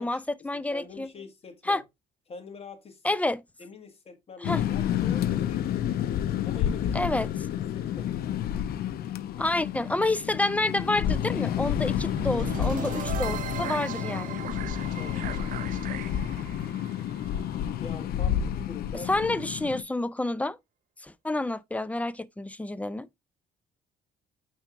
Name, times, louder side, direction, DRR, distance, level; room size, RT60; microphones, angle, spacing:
voice 1, 0.0-1.1 1.7-1.8 3.0-3.4 4.4-4.6 6.9-7.3 9.4-14.4 19.1-20.6 21.0-23.1, left 2 dB, 10° left, 0.4 m, -29 dB
voice 2, 0.7-1.8 2.3-3.2 3.6-5.9 6.4-7.1 7.5-8.1 14.9-15.4 17.8-19.4, left 5 dB, 35° left, 1.8 m, -44 dB
sound 1, 4.4-19.8, left 10 dB, 65° left, 0.8 m, -30 dB
sound 2, 12.0-18.1, right 11 dB, 55° right, 0.5 m, -38 dB
9.2 x 3.5 x 3.6 m
cardioid pair, 110°, 17 cm